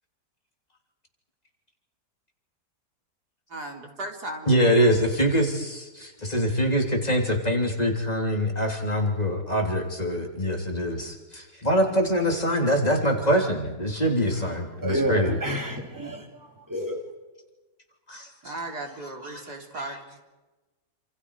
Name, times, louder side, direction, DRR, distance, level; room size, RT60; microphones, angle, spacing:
voice 1, 3.5-4.6 18.4-20.2, right 2 dB, 65° right, 2 dB, 4.2 m, -36 dB
voice 2, 4.5-15.4 18.1-18.3 19.8-19.9, equal, 20° left, 1 dB, 3.4 m, -24 dB
voice 3, 14.4-17.0, right 1 dB, 10° right, 3 dB, 2.9 m, -30 dB
28.0 x 27.5 x 4.8 m, 1.2 s
omnidirectional pair, 1.8 m